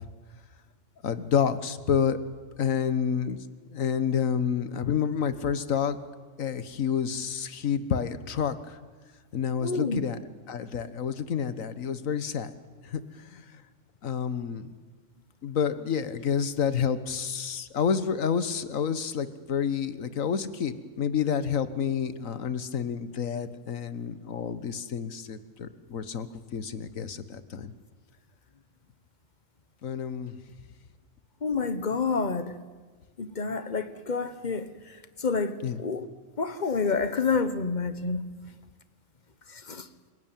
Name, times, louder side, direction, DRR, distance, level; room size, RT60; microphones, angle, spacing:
voice 1, 1.0-2.2 2.6-6.0 6.4-8.8 9.3-10.2 10.5-12.5 12.8-13.6 14.0-14.7 15.4-26.3 26.5-27.7 29.8-30.4 35.6-35.8, left 7 dB, 85° left, 1.6 m, -29 dB
voice 2, 9.6-10.0 31.4-32.6 33.2-36.1 36.4-38.2 39.5-39.9, left 4 dB, 35° left, 1.3 m, -29 dB
27.5 x 17.0 x 9.1 m
omnidirectional pair, 1.4 m